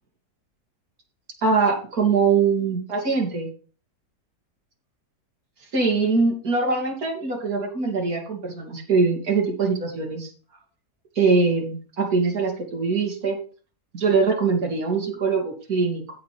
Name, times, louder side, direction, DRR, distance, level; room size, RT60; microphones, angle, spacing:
voice 1, 1.4-3.5 5.7-10.3 11.2-13.4 13.9-16.1, right 4 dB, 65° right, -1 dB, 3.0 m, -22 dB
15.5 x 5.4 x 3.4 m, 0.40 s
omnidirectional pair, 1.7 m